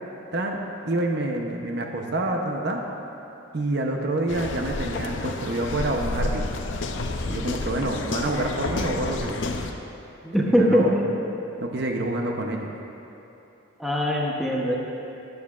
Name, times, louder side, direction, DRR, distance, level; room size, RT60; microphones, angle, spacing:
voice 1, 0.8-2.8 3.5-6.5 7.3-9.4 10.5-11.0 11.6-12.7, right 2 dB, 55° right, 2 dB, 0.7 m, -27 dB
sound 1, 4.3-9.7, left 2 dB, 60° left, 0.6 m, -30 dB
voice 2, 10.2-11.1 13.8-14.8, equal, ahead, -3 dB, 0.8 m, -21 dB
14.0 x 9.5 x 2.4 m, 2.9 s
head